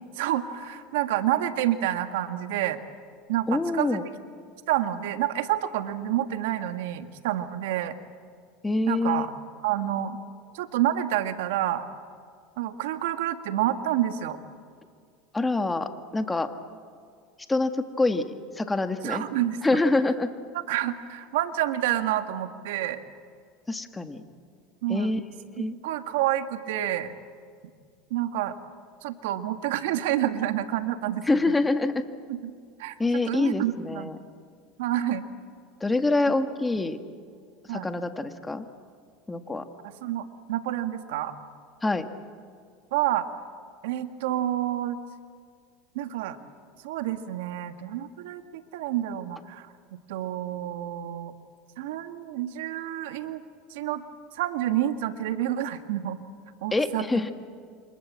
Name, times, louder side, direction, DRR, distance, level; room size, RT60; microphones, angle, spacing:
voice 1, 0.1-2.8 3.3-4.0 4.7-7.9 8.9-9.3 9.6-10.2 10.5-11.8 12.6-14.4 19.0-19.8 20.5-23.0 24.8-25.1 25.6-27.1 28.1-28.5 29.0-31.2 32.3-32.5 32.8-34.2 34.8-35.2 37.7-37.9 39.8-41.3 42.9-43.3 43.8-45.0 45.9-46.4 46.8-49.7 50.1-51.3 51.8-53.4 53.7-54.0 54.3-56.2 56.6-57.0, right 12 dB, 80° right, 8 dB, 1.7 m, -28 dB
voice 2, 3.5-4.0 8.6-9.3 15.3-16.5 17.5-18.3 18.6-19.2 19.6-20.3 23.7-24.2 24.9-25.2 25.5-25.7 31.3-32.0 33.0-34.2 35.8-37.0 37.7-38.6 39.3-39.6 41.8-42.0 56.7-57.3, left 2 dB, 10° left, 7 dB, 1.8 m, -25 dB
28.5 x 25.5 x 7.5 m, 2.1 s
supercardioid pair, 120°, 0 cm